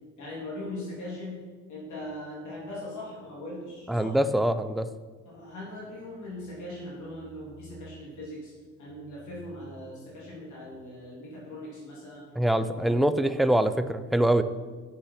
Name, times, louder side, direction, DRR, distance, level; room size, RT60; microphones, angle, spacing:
voice 1, 0.2-4.2 5.2-8.5 8.8-12.3 12.7-12.9, left 1 dB, 75° left, -5 dB, 2.9 m, -40 dB
voice 2, 3.9-4.9 12.4-14.4, right 1 dB, ahead, 11 dB, 0.4 m, -24 dB
7.5 x 6.8 x 5.8 m, 1.4 s
cardioid pair, 90°, 30 cm